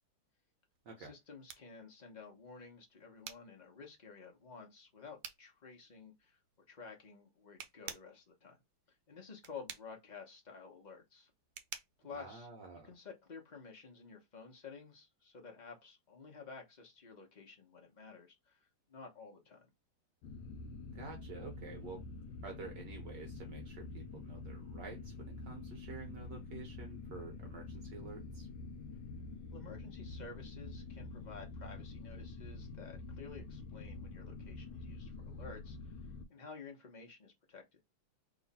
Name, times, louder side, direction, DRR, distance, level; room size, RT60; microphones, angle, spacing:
sound 1, 0.7-13.2, right 9 dB, 75° right, 1.5 m, -53 dB
voice 1, 1.0-6.4 6.7-8.6 8.9-11.3 12.0-12.5 12.8-19.7 29.5-35.9 36.3-37.8, left 5 dB, 40° left, 0.6 m, -52 dB
voice 2, 12.1-12.9 20.9-28.5, right 4 dB, 60° right, 1.3 m, -49 dB
sound 2, 20.2-36.2, left 3 dB, 80° left, 1.4 m, -47 dB
3.1 x 3.0 x 4.1 m
omnidirectional pair, 2.4 m